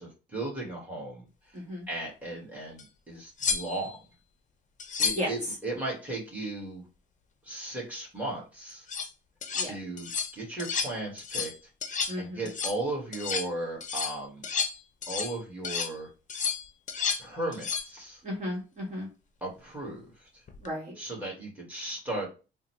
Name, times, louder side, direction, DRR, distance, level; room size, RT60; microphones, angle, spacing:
voice 1, 0.0-1.6 1.9-4.0 5.0-6.8 7.4-8.9 9.6-11.6 12.2-14.4 15.1-16.1 17.2-18.2 19.4-20.4 21.0-22.3, right 2 dB, 10° right, -3 dB, 1.8 m, -36 dB
voice 2, 1.5-1.9 5.1-5.3 9.5-9.7 12.1-12.4 18.2-19.1 20.6-20.9, equal, 35° right, -3 dB, 1.4 m, -34 dB
sound 1, 2.8-2.9 3.4-4.0 4.8-5.3 8.7-9.1 9.4-9.7 10.0-10.3 10.6-10.9 11.2-11.6 11.8-12.2 12.5-12.8 13.1-13.5 13.8-15.4 15.6-15.9 16.3-17.2 17.5-17.9 20.5-20.7, left 6 dB, 40° left, 0.6 m, -31 dB
3.7 x 2.2 x 3.0 m, 0.32 s
cardioid pair, 90°, 20 cm